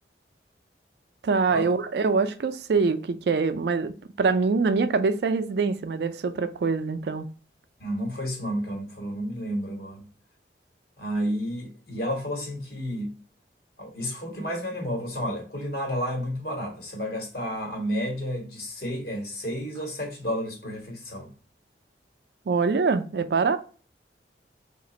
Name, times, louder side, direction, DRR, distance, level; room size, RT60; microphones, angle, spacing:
voice 1, 1.2-7.3 22.5-23.6, right 4 dB, 65° right, 0.4 m, -24 dB
voice 2, 7.8-10.0 11.0-13.1 13.8-21.3, equal, 55° left, 1.3 m, -31 dB
2.9 x 2.5 x 4.0 m
head